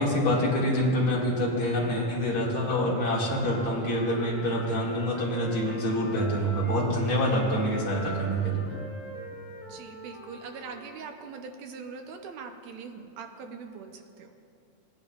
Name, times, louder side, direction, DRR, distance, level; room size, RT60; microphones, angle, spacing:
voice 1, 0.0-8.8, equal, 45° left, -5 dB, 2.7 m, -26 dB
Wind instrument woodwind instrument, 3.1-6.9 7.2-11.1, equal, 30° left, 1.9 m, -43 dB
voice 2, 9.7-14.3, right 5 dB, 75° right, 5 dB, 1.7 m, -42 dB
18.0 x 10.5 x 2.4 m, 2.7 s
omnidirectional pair, 3.6 m